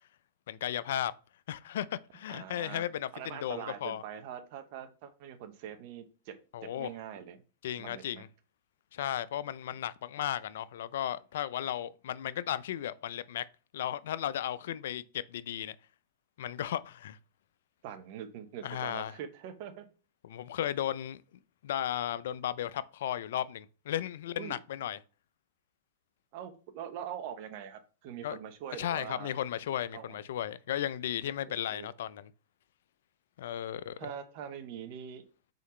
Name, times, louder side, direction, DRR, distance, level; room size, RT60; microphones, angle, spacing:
voice 1, 0.5-1.1 1.5-4.0 6.5-6.9 7.6-8.3 8.9-13.5 13.7-15.8 16.4-17.2 18.6-19.2 20.2-21.2 21.6-25.0 28.2-28.4 28.8-32.3 33.4-33.9, left 11 dB, 70° left, 0.3 m, -35 dB
voice 2, 2.3-2.8 3.1-6.4 6.6-7.4 7.8-8.2 17.8-19.9 24.4-24.6 26.3-29.3 29.9-30.2 31.5-31.9 34.0-35.2, right 9 dB, 55° right, 0.8 m, -43 dB
4.0 x 3.8 x 3.1 m
hypercardioid pair, 110°, 0 cm